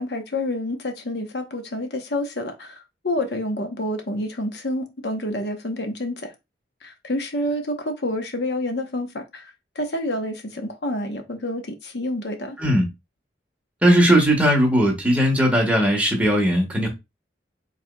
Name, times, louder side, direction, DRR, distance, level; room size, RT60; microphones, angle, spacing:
voice 1, 0.0-6.3 6.8-12.6, left 1 dB, 65° left, 0.8 m, -28 dB
voice 2, 13.8-16.9, equal, 10° right, 1.3 m, -18 dB
4.5 x 4.0 x 2.2 m
head